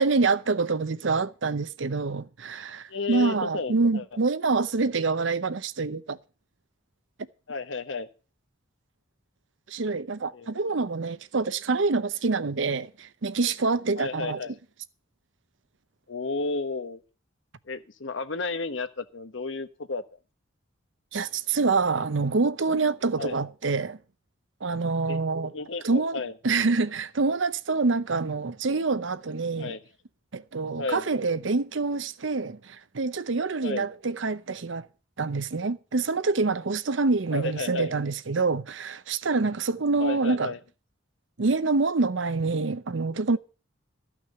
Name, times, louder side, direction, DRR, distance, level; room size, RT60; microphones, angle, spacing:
voice 1, 0.0-6.2 9.7-14.4 21.1-24.0 24.6-25.5 25.8-29.7 30.3-34.9 35.2-40.5 41.4-43.4, right 3 dB, 70° right, 0.7 m, -26 dB
voice 2, 2.9-4.1 7.5-8.1 10.3-10.5 14.0-14.6 16.1-17.0 17.7-20.0 23.2-23.4 25.1-25.2 25.5-26.3 29.6-29.8 30.8-31.0 33.6-33.9 37.3-37.9 40.0-40.6, left 3 dB, 70° left, 1.1 m, -32 dB
13.5 x 6.0 x 7.8 m
head